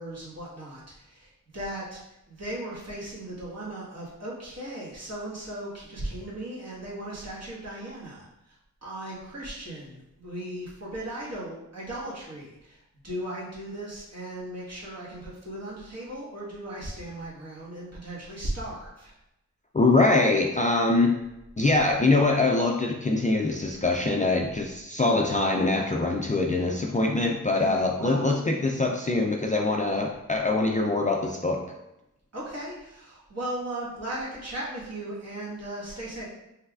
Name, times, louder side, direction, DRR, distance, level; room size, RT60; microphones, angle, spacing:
voice 1, 0.0-2.0 2.3-8.5 8.8-19.1 27.6-28.4 32.3-36.2, right 1 dB, 45° right, -6 dB, 1.5 m, -37 dB
voice 2, 19.7-21.2 21.6-31.6, left 2 dB, 25° left, 0 dB, 0.4 m, -23 dB
5.4 x 3.3 x 2.4 m, 0.88 s
wide cardioid pair, 115°, 34 cm